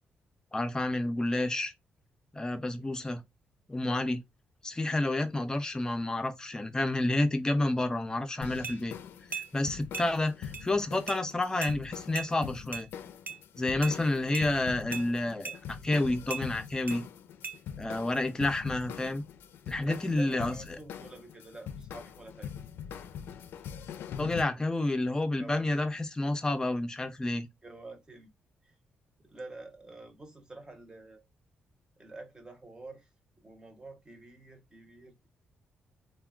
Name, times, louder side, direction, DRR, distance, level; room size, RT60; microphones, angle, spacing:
voice 1, 0.5-1.7 2.3-3.2 3.7-4.2 4.6-8.9 9.5-12.9 13.6-17.0 17.8-19.2 19.7-20.8 24.2-27.5, left 2 dB, 20° left, 0.5 m, -30 dB
sound 1, 8.4-24.4, left 8 dB, 80° left, 0.3 m, -43 dB
sound 2, 8.6-8.8 9.3-9.5 9.9-10.1 10.5-10.6 11.1-11.2 11.6-11.8 12.1-12.3 12.7-12.9 13.3-13.4 13.8-14.0 14.3-14.5 14.9-15.1 15.4-15.6 16.3-16.4 16.9-17.0 17.4-17.6, right 5 dB, 55° right, 0.5 m, -37 dB
voice 2, 13.7-14.1 19.8-22.5 25.4-25.7 27.6-28.3 28.6-28.7 29.2-31.2 32.0-33.1 33.4-35.3, right 2 dB, 20° right, 0.8 m, -48 dB
3.4 x 2.2 x 2.3 m
cardioid pair, 100°, 4 cm